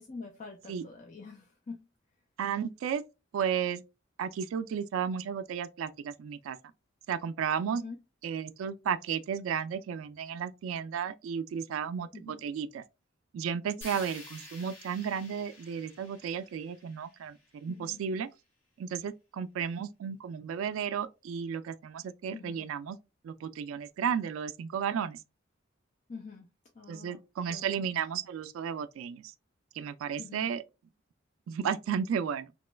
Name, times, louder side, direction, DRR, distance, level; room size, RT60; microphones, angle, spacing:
voice 1, 0.0-1.9 7.7-8.0 12.1-12.4 13.8-14.0 17.7-18.0 22.3-22.7 26.1-26.5 26.7-27.7 30.2-30.5, left 4 dB, 40° left, 0.5 m, -46 dB
voice 2, 2.4-3.0 3.3-3.8 4.2-6.6 7.1-7.8 8.2-12.8 13.3-18.3 18.8-23.0 23.2-25.2 26.9-29.3 29.7-30.6 31.5-32.5, right 7 dB, 85° right, 0.3 m, -33 dB
sound 1, 13.8-17.9, left 2 dB, 75° left, 1.4 m, -50 dB
3.0 x 2.2 x 3.1 m
head